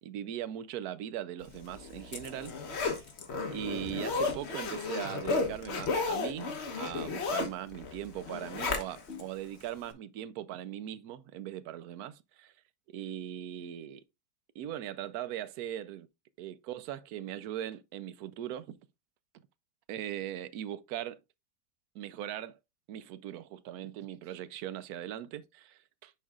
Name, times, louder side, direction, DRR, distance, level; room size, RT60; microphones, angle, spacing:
voice 1, 0.0-3.1 3.5-12.5 12.9-14.0 14.5-16.1 16.4-18.7 19.9-21.2 21.9-22.6 22.9-26.1, right 11 dB, 70° right, 1.1 m, -40 dB
Zipper (clothing), 1.6-9.2 9.6-9.7, left 4 dB, 45° left, 1.2 m, -34 dB
10.0 x 4.6 x 2.4 m
omnidirectional pair, 1.8 m